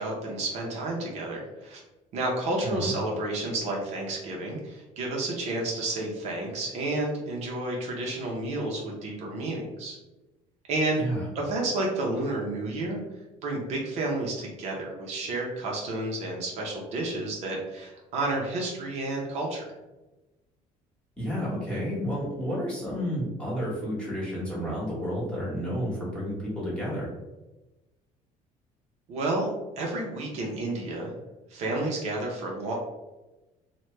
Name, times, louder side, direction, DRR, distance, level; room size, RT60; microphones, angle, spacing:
voice 1, 0.0-1.8 2.1-10.0 10.7-11.0 11.3-13.0 13.4-19.6 29.1-29.5 29.8-31.1 31.5-32.7, right 2 dB, 55° right, -2 dB, 0.6 m, -30 dB
voice 2, 2.6-2.9 11.0-11.2 21.2-27.1, equal, 5° left, -7 dB, 1.2 m, -31 dB
3.0 x 2.1 x 3.1 m, 1.1 s
cardioid pair, 155°, 14 cm